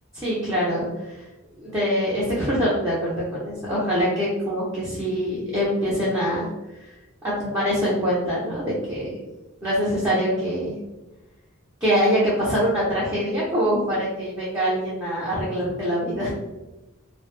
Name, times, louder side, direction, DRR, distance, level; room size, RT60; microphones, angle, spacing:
voice 1, 0.1-1.2 1.6-6.5 6.8-6.9 7.2-9.1 9.6-10.7 11.8-16.3, equal, 15° right, -8 dB, 0.6 m, -24 dB
2.2 x 2.0 x 3.0 m, 1.1 s
head